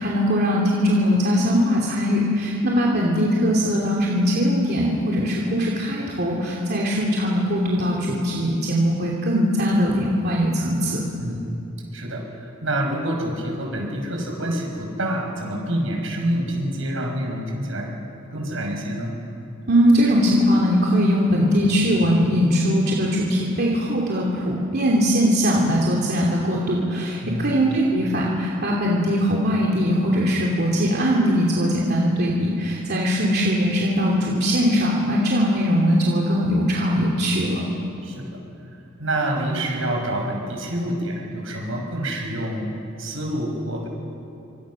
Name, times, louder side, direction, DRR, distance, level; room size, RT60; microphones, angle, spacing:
voice 1, 0.0-11.0 19.7-37.6, equal, 55° right, -3 dB, 2.8 m, -21 dB
voice 2, 11.2-11.6 11.9-18.0 18.3-19.1 27.2-27.6 27.9-28.0 38.0-38.4 39.0-42.7 43.0-43.9, right 1 dB, 80° right, 1 dB, 5.7 m, -27 dB
25.5 x 25.5 x 6.3 m, 2.7 s
head